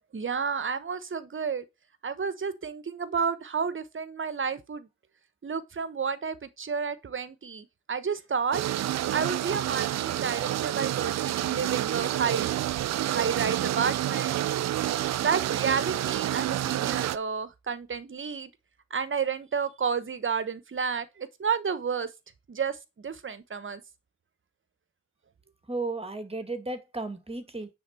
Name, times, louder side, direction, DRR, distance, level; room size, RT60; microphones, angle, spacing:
voice 1, 0.1-1.6 2.0-4.9 5.4-8.6 9.1-12.5 13.1-14.4 15.2-18.5 18.9-22.1 22.5-23.8, right 6 dB, 40° right, 1.2 m, -31 dB
sound 1, 8.5-17.2, right 13 dB, 60° right, 0.5 m, -28 dB
voice 2, 25.7-27.7, right 2 dB, 20° right, 1.9 m, -34 dB
9.3 x 3.9 x 5.4 m
supercardioid pair, 50°, 30 cm